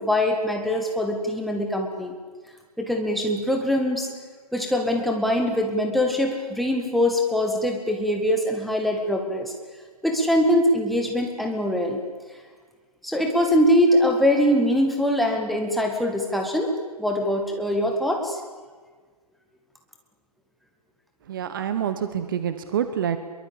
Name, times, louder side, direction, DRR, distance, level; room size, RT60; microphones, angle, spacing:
voice 1, 0.0-2.1 2.8-4.1 4.5-9.5 10.0-12.0 13.0-16.7 17.0-18.4, equal, ahead, 2 dB, 2.0 m, -23 dB
voice 2, 21.2-23.2, right 9 dB, 30° right, 10 dB, 1.3 m, -27 dB
23.5 x 23.0 x 8.9 m, 1.5 s
figure-of-eight pair, 140°, 21 cm